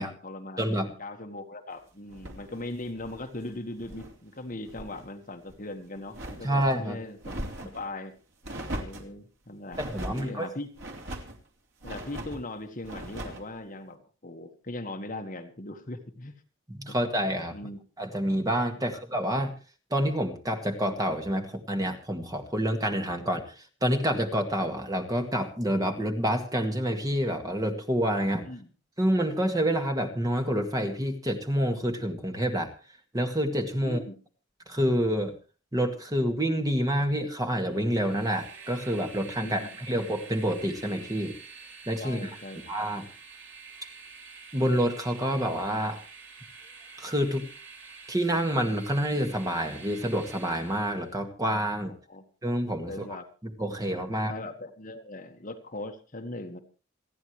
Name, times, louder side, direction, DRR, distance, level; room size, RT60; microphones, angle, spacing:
voice 1, 0.0-0.6 1.0-7.4 7.7-8.2 8.7-10.7 11.8-16.3 16.9-17.0 17.5-17.8 28.4-28.7 33.8-34.2 39.4-39.7 42.0-42.7 52.1-52.2 52.9-53.3 54.1-56.6, left 2 dB, 40° left, 5 dB, 1.6 m, -39 dB
voice 2, 0.6-0.9 6.4-7.0 9.8-10.5 16.7-17.6 18.0-19.5 19.9-23.4 23.8-28.4 29.0-32.7 33.1-34.0 34.7-35.3 35.7-41.3 41.9-42.3 42.7-43.1 44.5-46.0 47.0-47.5 48.1-51.9 52.4-53.1 53.6-54.3, equal, 20° right, 4 dB, 1.9 m, -28 dB
sound 1, 2.1-4.2 4.5-5.1 5.4-6.8 7.2-7.9 8.4-9.1 9.7-10.3 10.8-11.4 11.8-12.4 12.8-13.5, right 1 dB, 80° right, 3.0 m, -39 dB
Train, 37.6-51.1, right 5 dB, 65° right, 4.9 m, -47 dB
28.5 x 10.0 x 3.2 m, 0.34 s
head